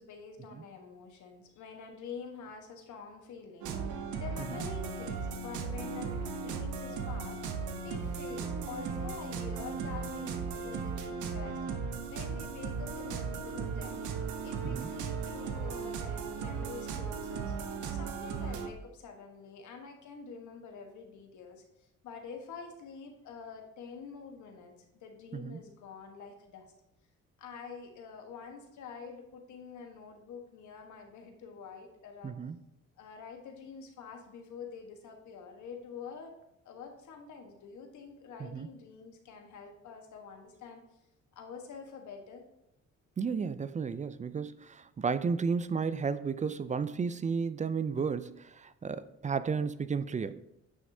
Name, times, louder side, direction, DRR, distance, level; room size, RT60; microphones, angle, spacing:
voice 1, 0.0-11.6 12.1-14.0 14.4-17.5 17.9-24.7 25.0-26.7 27.4-32.4 33.0-36.3 36.6-40.8 41.3-42.4, left 5 dB, 75° left, 4 dB, 1.3 m, -47 dB
sound 1, 3.6-18.7, right 5 dB, 80° right, 0.9 m, -36 dB
voice 2, 32.2-32.6 38.4-38.7 43.2-50.4, right 5 dB, 25° right, 14 dB, 0.4 m, -33 dB
9.2 x 6.1 x 2.7 m, 0.85 s
cardioid pair, 90°, 30 cm